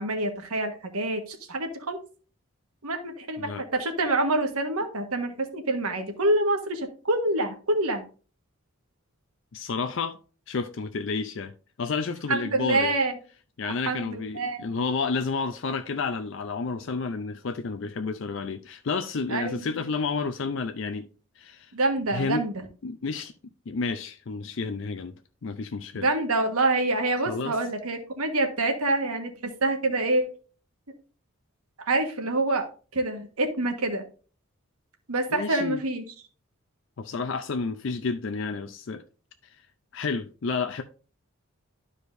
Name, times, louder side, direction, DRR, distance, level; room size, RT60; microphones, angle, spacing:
voice 1, 0.0-2.0 2.8-8.0 12.3-13.1 13.6-14.6 19.3-19.7 21.7-22.6 26.0-30.3 31.8-32.6 32.9-34.0 35.1-36.0, right 2 dB, 90° right, 1.4 m, -26 dB
voice 2, 9.5-10.2 10.5-11.5 11.8-12.9 13.6-21.1 21.4-21.7 22.1-22.4 22.8-23.3 23.7-25.1 25.4-26.1 27.3-27.6 35.3-35.8 37.0-39.0 39.9-40.8, left 4 dB, 60° left, 0.5 m, -30 dB
12.0 x 4.9 x 2.6 m
head